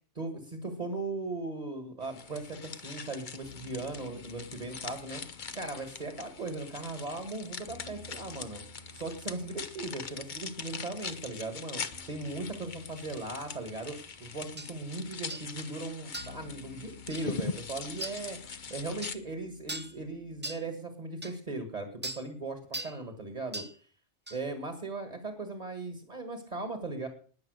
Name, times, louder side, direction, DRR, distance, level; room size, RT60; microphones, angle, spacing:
voice 1, 0.2-8.6 8.9-11.8 12.1-18.4 18.7-23.6 24.3-27.1, right 2 dB, 35° right, 6 dB, 2.0 m, -38 dB
sound 1, 2.0-19.2, left 5 dB, 45° left, 1.0 m, -42 dB
sound 2, 3.4-20.4, left 3 dB, 80° left, 4.3 m, -55 dB
sound 3, 14.6-14.7 15.3-15.5 16.1-16.4 17.1-17.3 18.0-18.2 19.0-19.2 19.7-20.0 20.4-20.7 21.2-21.3 22.0-22.3 22.7-23.0 23.5-23.8 24.3-24.4, right 2 dB, 10° right, 0.6 m, -39 dB
19.5 x 7.6 x 6.5 m, 0.43 s
omnidirectional pair, 1.2 m